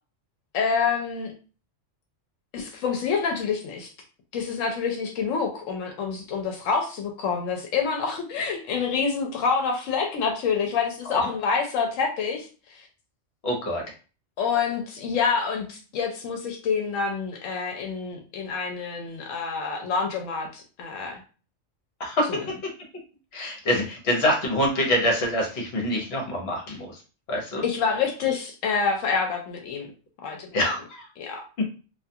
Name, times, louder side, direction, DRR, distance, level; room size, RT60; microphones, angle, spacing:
voice 1, 0.5-1.3 2.5-3.9 4.3-12.8 14.4-21.2 22.3-22.5 27.6-29.9 30.2-30.7 31.2-31.4, left 5 dB, 90° left, 2 dB, 1.0 m, -27 dB
voice 2, 13.4-13.8 22.0-22.3 23.3-27.0 27.3-27.6 30.5-31.0, left 1 dB, 60° left, 0 dB, 1.1 m, -25 dB
2.4 x 2.3 x 2.6 m, 0.36 s
omnidirectional pair, 1.3 m